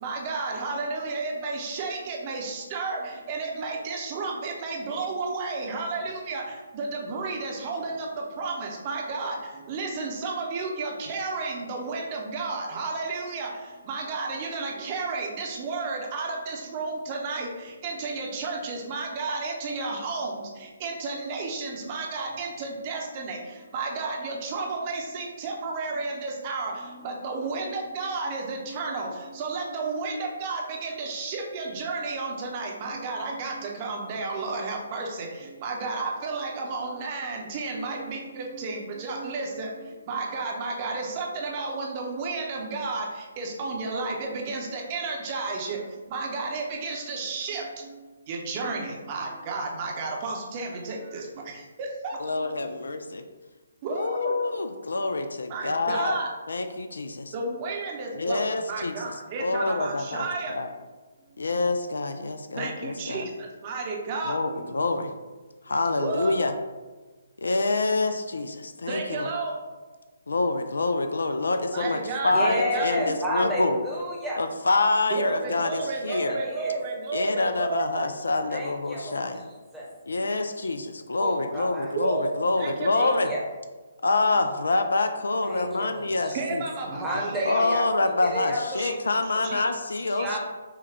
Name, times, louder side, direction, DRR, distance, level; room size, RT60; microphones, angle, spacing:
voice 1, 0.0-52.8 53.8-54.3 55.5-56.3 57.3-60.6 61.3-61.4 62.6-64.7 66.0-66.4 68.9-69.6 71.7-73.2 75.1-78.1 81.9-83.2 86.3-87.7 88.8-88.9 89.4-89.6 90.2-90.3, right 3 dB, 30° right, 0 dB, 0.7 m, -32 dB
voice 2, 52.2-53.2 53.9-56.2 56.5-57.3 58.1-58.9 59.4-60.3 60.5-60.7 61.4-63.3 64.2-65.1 65.7-66.5 67.4-69.3 70.3-73.8 74.4-76.4 77.1-79.4 80.1-83.3 84.0-86.6 87.5-90.3, left 2 dB, 65° left, 7 dB, 0.3 m, -26 dB
voice 3, 72.3-74.4 76.0-76.8 78.5-79.3 79.7-79.9 81.2-81.9 82.9-83.4 85.4-86.4 86.8-87.9 88.2-89.0 89.3-89.5 90.1-90.4, equal, ahead, -6 dB, 0.9 m, -31 dB
5.8 x 2.2 x 3.5 m, 1.3 s
figure-of-eight pair, 135°, 0 cm